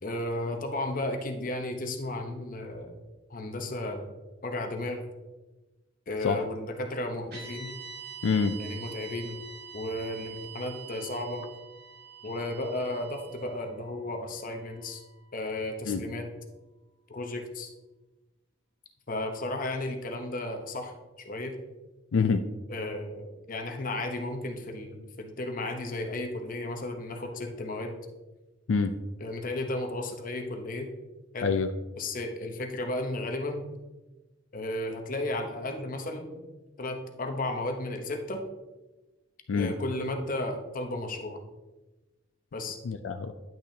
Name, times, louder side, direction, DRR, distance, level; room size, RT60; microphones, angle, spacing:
voice 1, 0.0-3.0 3.3-4.1 4.4-5.0 6.1-7.7 8.6-9.4 9.7-11.5 12.2-15.0 15.3-16.3 17.1-17.7 19.1-21.6 22.7-27.9 29.2-30.9 31.3-31.5 32.0-33.7 34.5-36.4 36.8-38.4 39.5-41.4 42.5-42.8, left 2 dB, 45° left, 5 dB, 0.9 m, -34 dB
sound 1, 7.3-15.6, right 7 dB, 55° right, 2.1 m, -46 dB
voice 2, 8.2-8.6 15.9-16.0 22.1-22.4 28.7-29.0 31.4-31.7 39.5-39.7 42.8-43.3, left 5 dB, 85° left, 8 dB, 0.4 m, -26 dB
10.5 x 6.2 x 2.8 m, 1.1 s
head